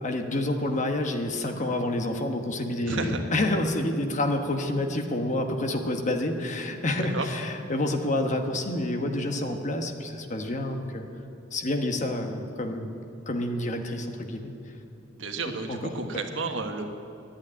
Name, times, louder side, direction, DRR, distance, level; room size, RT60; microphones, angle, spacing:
voice 1, 0.0-11.0 11.5-12.9 13.3-14.5 15.7-15.8, left 1 dB, 40° left, 5 dB, 1.1 m, -28 dB
voice 2, 2.8-3.2 7.0-7.3 15.2-16.9, right 3 dB, 80° right, 5 dB, 1.3 m, -31 dB
11.5 x 8.8 x 9.7 m, 2.7 s
head